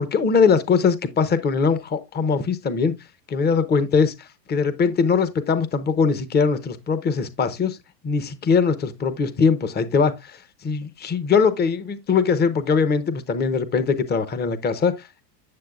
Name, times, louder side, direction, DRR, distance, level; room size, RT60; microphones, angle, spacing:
voice 1, 0.0-2.9 3.3-7.8 8.0-15.2, left 5 dB, 20° left, 0.8 m, -21 dB
8.6 x 7.3 x 2.4 m
hypercardioid pair, 110°, 50 cm